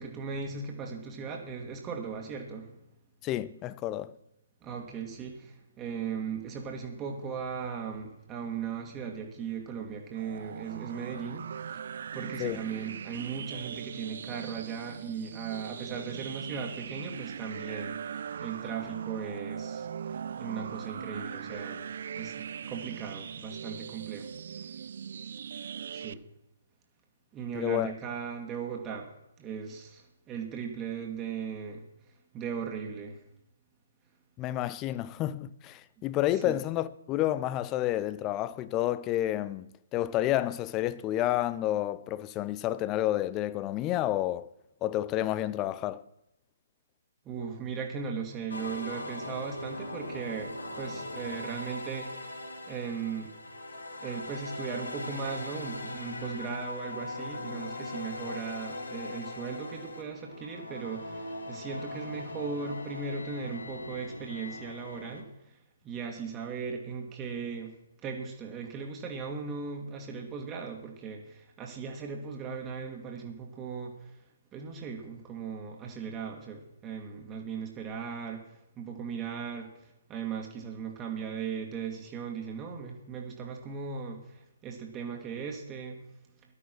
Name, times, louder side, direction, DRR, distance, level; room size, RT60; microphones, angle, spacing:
voice 1, 0.0-2.8 4.6-11.9 12.1-24.7 25.9-26.2 27.3-29.1 29.4-31.8 32.3-33.2 36.0-36.1 36.3-36.6 47.3-53.4 54.0-65.6 65.8-67.8 68.0-74.2 74.5-86.0, right 6 dB, 20° right, 2.0 m, -38 dB
voice 2, 3.2-4.1 12.4-12.6 27.5-27.9 34.4-39.6 39.9-44.5 44.8-46.0, left 14 dB, 20° left, 0.6 m, -30 dB
sound 1, 10.2-26.1, right 7 dB, 55° right, 0.4 m, -40 dB
sound 2, 48.5-65.2, left 2 dB, 80° left, 2.4 m, -40 dB
14.0 x 11.5 x 6.1 m
figure-of-eight pair, 135°, 0 cm